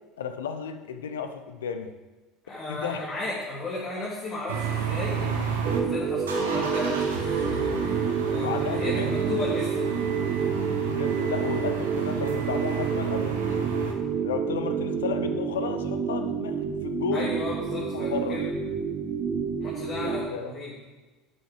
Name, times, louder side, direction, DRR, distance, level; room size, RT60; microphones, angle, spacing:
voice 1, 0.2-1.9 2.7-3.1 8.3-9.2 10.9-13.7 14.2-17.3 17.9-18.4 19.9-20.5, left 7 dB, 70° left, 8 dB, 0.7 m, -33 dB
voice 2, 2.4-9.9 17.1-18.4 19.6-20.8, left 2 dB, 35° left, -6 dB, 2.5 m, -35 dB
sound 1, 4.5-5.8 6.2-13.9, right 7 dB, 75° right, 1.4 m, -32 dB
sound 2, 5.6-20.2, right 6 dB, 45° right, 1.2 m, -28 dB
11.5 x 6.4 x 4.9 m, 1.2 s
figure-of-eight pair, 65°, 0 cm